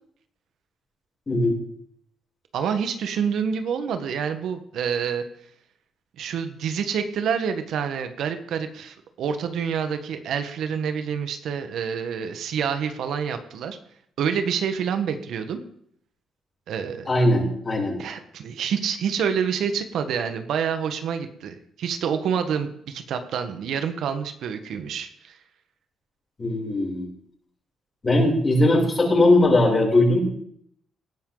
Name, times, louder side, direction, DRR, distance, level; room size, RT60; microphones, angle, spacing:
voice 1, 1.3-1.6 17.1-18.0 26.4-27.1 28.0-30.2, left 1 dB, 30° left, -2 dB, 7.2 m, -19 dB
voice 2, 2.5-5.2 6.2-13.8 14.2-15.6 16.7-17.1 18.0-25.4, right 7 dB, 75° right, 8 dB, 1.4 m, -27 dB
18.5 x 12.0 x 4.0 m, 0.66 s
cardioid pair, 90°, 0 cm